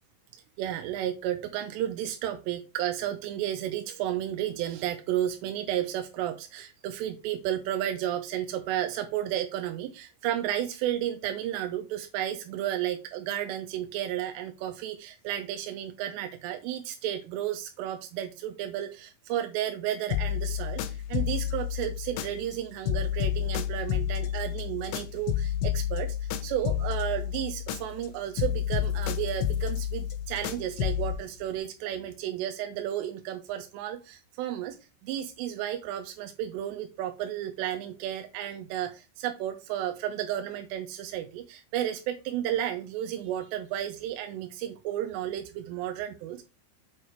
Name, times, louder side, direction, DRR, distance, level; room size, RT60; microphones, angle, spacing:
voice 1, 0.6-34.8 35.0-46.4, right 11 dB, 85° right, 5 dB, 2.6 m, -32 dB
sound 1, 20.1-22.6 22.9-28.1 28.4-31.2, left 10 dB, 90° left, 3.2 m, -30 dB
8.1 x 4.7 x 4.6 m, 0.29 s
omnidirectional pair, 5.4 m